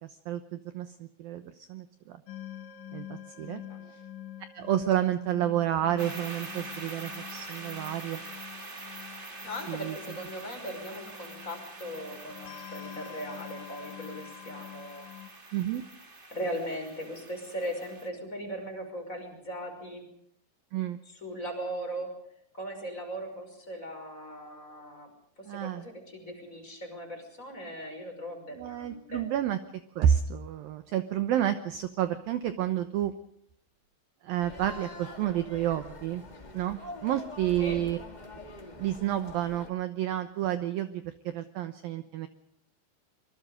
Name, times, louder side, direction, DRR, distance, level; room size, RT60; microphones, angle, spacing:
voice 1, 0.0-2.2 2.9-3.6 4.5-8.2 9.7-10.0 15.5-15.8 20.7-21.0 25.5-25.9 28.6-29.6 30.0-33.1 34.2-36.2 36.5-38.0 38.8-42.3, right 11 dB, 70° right, 10 dB, 2.4 m, -30 dB
sound 1, 2.3-15.3, left 12 dB, 90° left, 3.8 m, -47 dB
voice 2, 3.3-3.8 9.4-15.1 16.3-20.0 21.1-22.1 22.5-25.1 25.4-29.2 37.6-37.8, equal, 15° left, 3 dB, 5.9 m, -39 dB
sound 2, 6.0-18.1, right 2 dB, 35° right, 0.8 m, -45 dB
sound 3, 34.4-39.7, left 2 dB, 70° left, 0.4 m, -45 dB
25.0 x 23.5 x 5.1 m, 0.69 s
omnidirectional pair, 5.0 m